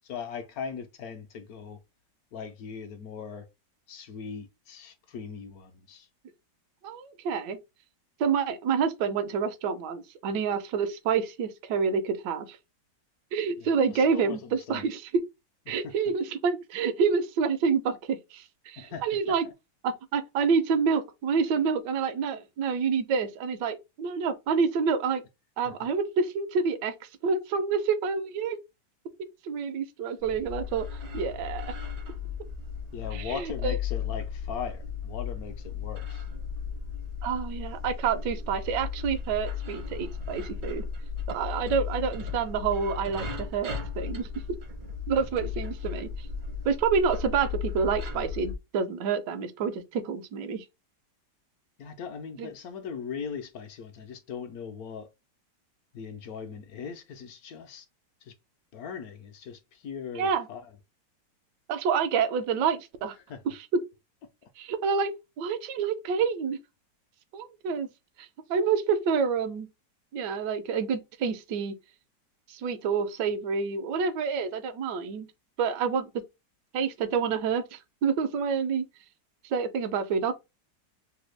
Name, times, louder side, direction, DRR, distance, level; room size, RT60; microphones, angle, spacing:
voice 1, 0.0-1.8 2.3-3.5 3.9-6.1 13.6-14.9 15.7-15.9 18.8-19.5 32.9-36.2 45.6-45.7 51.8-55.1 55.9-57.9 58.2-58.3 58.7-60.7 63.3-63.4, left 6 dB, 65° left, 0.9 m, -39 dB
voice 2, 6.8-7.6 8.2-12.6 13.3-15.0 15.7-19.4 19.8-25.2 25.6-26.9 27.2-28.6 29.4-30.9 31.1-31.7 33.1-33.8 37.2-40.8 41.3-44.3 45.1-46.1 46.6-50.6 52.4-52.5 60.2-60.5 61.7-63.2 63.5-63.6 64.6-65.1 65.4-66.6 67.3-67.9 68.2-69.7 70.1-71.7 72.5-75.3 75.6-76.1 76.7-78.8 79.4-80.3, right 6 dB, 75° right, 1.2 m, -28 dB
sound 1, 30.2-48.6, left 6 dB, 45° right, 0.6 m, -35 dB
3.4 x 2.2 x 3.2 m
omnidirectional pair, 1.9 m